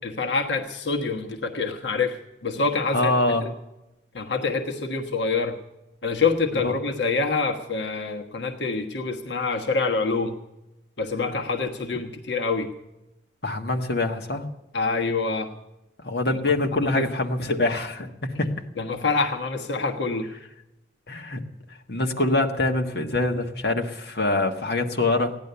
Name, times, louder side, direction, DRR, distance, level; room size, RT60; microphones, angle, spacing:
voice 1, 0.0-3.1 3.4-3.5 4.1-5.6 6.0-10.3 11.0-12.7 14.7-15.5 16.2-16.4 16.8-17.0 18.8-20.3, left 4 dB, 90° left, 2 dB, 1.3 m, -26 dB
voice 2, 2.9-3.5 6.6-6.7 13.4-14.5 16.0-18.5 21.1-21.4 21.9-25.4, left 2 dB, 65° left, 3 dB, 1.5 m, -24 dB
16.0 x 10.5 x 6.8 m, 0.96 s
head